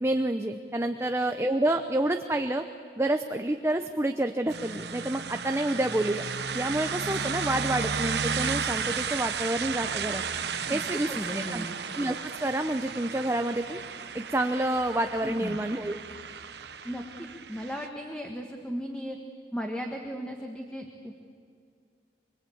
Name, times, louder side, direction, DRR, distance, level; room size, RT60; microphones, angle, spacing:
voice 1, 0.0-2.6 3.0-6.3 6.5-10.2 10.7-11.1 11.5-11.7 11.9-13.8 14.1-16.0, right 1 dB, 15° right, 6 dB, 0.7 m, -28 dB
sound 1, 4.5-17.9, right 6 dB, 70° right, 1.1 m, -34 dB
voice 2, 11.1-11.7 15.2-15.6 16.8-19.2 19.5-21.1, equal, 5° left, 2 dB, 1.5 m, -36 dB
24.0 x 24.0 x 8.6 m, 2.2 s
head